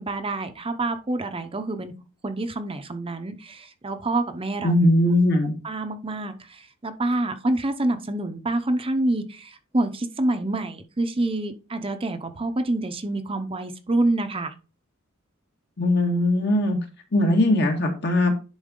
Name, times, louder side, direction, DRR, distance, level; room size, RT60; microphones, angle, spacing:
voice 1, 0.0-1.9 2.2-4.7 5.6-14.5, right 2 dB, 25° right, 8 dB, 0.7 m, -27 dB
voice 2, 4.6-5.5 15.8-16.8 17.1-18.4, left 1 dB, 55° left, 3 dB, 1.8 m, -20 dB
10.5 x 4.1 x 3.7 m, 0.33 s
head